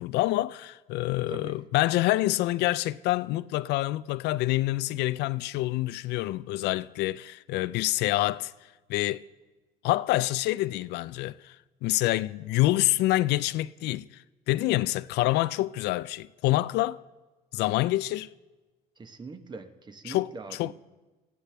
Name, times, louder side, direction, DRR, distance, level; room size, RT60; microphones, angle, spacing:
voice 1, 0.0-8.5 8.9-9.2 9.8-11.6 11.8-14.2 14.5-17.0 17.5-18.3 20.0-20.7, left 17 dB, 85° left, 0.4 m, -27 dB
voice 2, 19.0-20.7, right 3 dB, 25° right, 1.0 m, -42 dB
19.0 x 15.0 x 3.4 m
cardioid pair, 110°, 17 cm